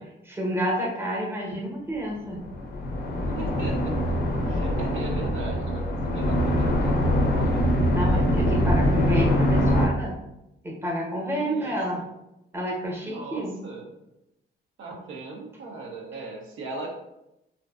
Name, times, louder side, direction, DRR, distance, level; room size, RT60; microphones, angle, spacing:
voice 1, 0.3-2.4 7.9-10.1 10.6-12.0 12.5-13.5, equal, 10° right, -2 dB, 0.7 m, -29 dB
sound 1, 2.3-9.9, equal, 50° left, 0.4 m, -23 dB
voice 2, 3.4-4.2 4.5-7.5 11.4-12.1 13.0-13.9 14.8-16.9, right 3 dB, 75° right, 0 dB, 0.5 m, -38 dB
2.5 x 2.2 x 2.3 m, 0.88 s
cardioid pair, 90°, 20 cm